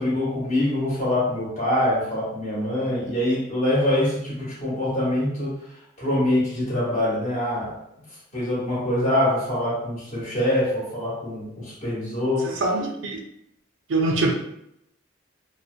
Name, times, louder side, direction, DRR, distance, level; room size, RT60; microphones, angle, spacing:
voice 1, 0.0-5.6 6.0-7.7 8.3-12.6, left 1 dB, 35° left, -7 dB, 1.1 m, -24 dB
voice 2, 12.4-13.2 13.9-14.3, right 2 dB, 70° right, 2 dB, 0.4 m, -23 dB
2.6 x 2.1 x 2.4 m, 0.78 s
head